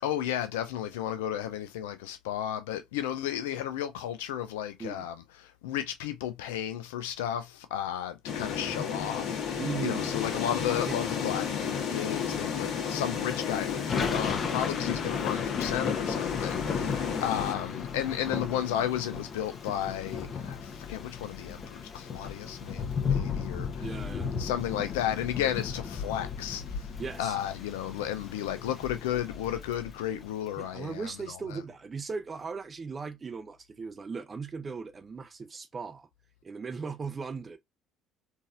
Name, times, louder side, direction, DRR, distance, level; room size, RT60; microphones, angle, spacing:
voice 1, 0.0-23.9 24.4-26.9 27.2-31.1 31.5-31.6, left 11 dB, 85° left, 0.4 m, -33 dB
sound 1, 8.2-17.5, left 7 dB, 60° left, 1.4 m, -32 dB
voice 2, 9.6-10.2 10.9-11.2 23.8-24.3 27.0-27.4 30.6-36.1 36.4-37.6, right 5 dB, 35° right, 0.5 m, -38 dB
Thunder / Rain, 13.0-30.5, left 6 dB, 45° left, 0.9 m, -35 dB
3.9 x 2.6 x 2.5 m
hypercardioid pair, 70°, 0 cm